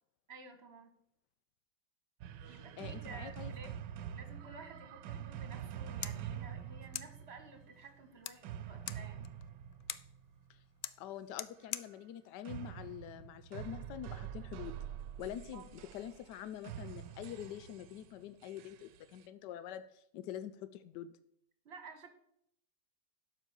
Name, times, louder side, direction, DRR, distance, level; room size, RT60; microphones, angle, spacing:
voice 1, 0.3-0.9 2.5-9.3 15.5-15.7 21.6-22.1, right 4 dB, 40° right, 6 dB, 1.7 m, -53 dB
sound 1, 2.2-10.6 12.5-19.2, right 10 dB, 90° right, 1.3 m, -46 dB
voice 2, 2.5-3.5 10.5-10.6 11.0-14.8 15.2-21.1, left 10 dB, 85° left, 13 dB, 1.2 m, -46 dB
sound 2, 5.6-13.6, left 12 dB, 70° left, 0.9 m, -48 dB
11.5 x 5.6 x 6.9 m, 0.73 s
omnidirectional pair, 1.8 m